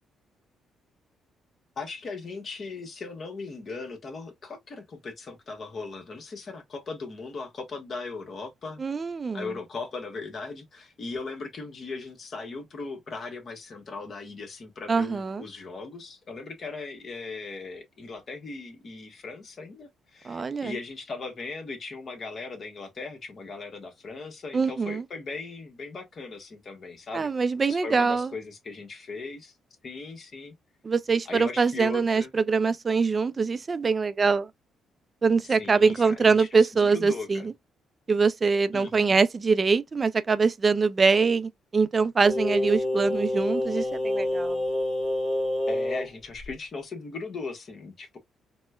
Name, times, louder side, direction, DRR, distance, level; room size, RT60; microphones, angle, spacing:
voice 1, 1.8-8.8 9.3-27.3 27.7-29.5 29.8-30.5 31.3-32.3 35.6-37.5 38.7-39.2 45.7-48.2, left 4 dB, 45° left, 1.1 m, -38 dB
voice 2, 8.8-9.5 14.9-15.4 20.2-20.8 24.5-25.0 27.1-28.3 30.8-34.5 35.2-37.5 38.1-44.6, right 4 dB, 35° right, 0.4 m, -24 dB
Singing, 42.2-46.1 46.4-46.5, left 1 dB, 10° left, 1.4 m, -27 dB
4.2 x 2.1 x 2.2 m
cardioid pair, 90°, 0 cm